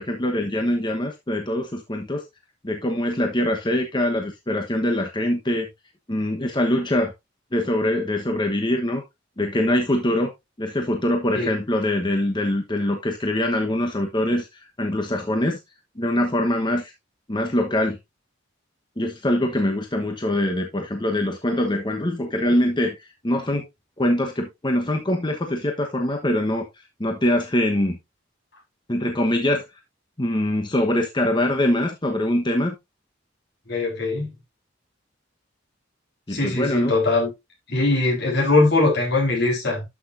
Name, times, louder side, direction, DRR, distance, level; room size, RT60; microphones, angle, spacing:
voice 1, 0.0-2.2 2.6-5.7 6.1-7.1 7.5-9.0 9.4-10.3 10.6-14.5 14.8-15.6 16.0-16.9 17.3-18.0 19.0-23.6 24.0-26.6 27.0-28.0 28.9-29.6 30.2-32.7 36.3-36.9, left 1 dB, 25° left, 1.1 m, -23 dB
voice 2, 33.7-34.3 36.3-37.3 37.7-39.8, left 2 dB, 60° left, 4.2 m, -21 dB
12.0 x 6.1 x 2.6 m
head